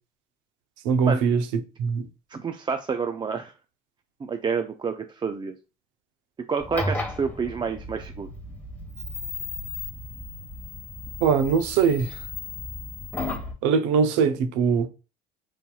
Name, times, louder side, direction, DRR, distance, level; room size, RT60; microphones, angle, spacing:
voice 1, 0.8-1.4 1.8-2.1 11.2-12.1 13.6-14.9, right 6 dB, 70° right, 0.7 m, -21 dB
voice 2, 2.3-3.5 4.2-5.6 6.5-8.3, right 5 dB, 25° right, 0.4 m, -29 dB
sound 1, 6.6-13.5, left 2 dB, 10° left, 1.2 m, -34 dB
4.2 x 2.6 x 2.3 m
hypercardioid pair, 75°, 20 cm